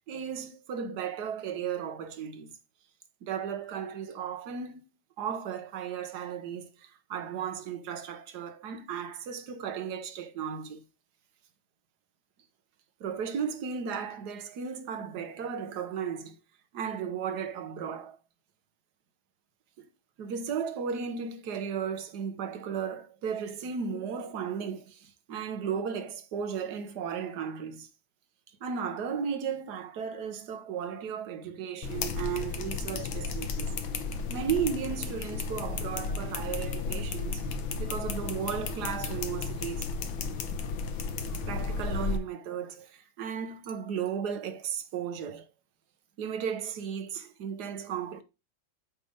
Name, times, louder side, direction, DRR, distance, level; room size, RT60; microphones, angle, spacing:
voice 1, 0.1-2.5 3.2-4.8 5.2-10.8 13.0-16.4 16.7-18.2 19.8-19.9 20.2-27.9 28.6-33.7 34.3-37.4 37.8-39.9 41.4-45.5 46.2-48.2, right 7 dB, 60° right, 1.5 m, -35 dB
sound 1, 31.8-42.2, left 4 dB, 80° left, 1.7 m, -33 dB
8.2 x 3.5 x 5.0 m
omnidirectional pair, 2.2 m